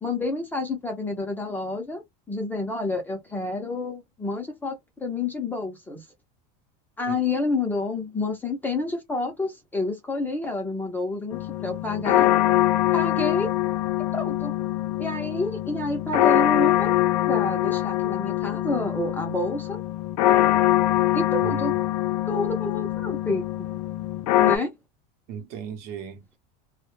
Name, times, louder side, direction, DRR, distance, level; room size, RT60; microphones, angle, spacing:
voice 1, 0.0-2.0 2.3-6.0 7.0-12.3 12.9-13.5 14.1-14.5 15.0-16.9 17.3-19.8 21.1-21.7 22.3-23.7 24.4-24.7, left 2 dB, 10° left, 0.4 m, -29 dB
sound 1, 11.3-24.6, left 14 dB, 80° left, 0.4 m, -23 dB
voice 2, 21.4-21.8 25.3-26.4, right 8 dB, 45° right, 0.7 m, -36 dB
2.1 x 2.0 x 2.9 m
supercardioid pair, 160°, 21 cm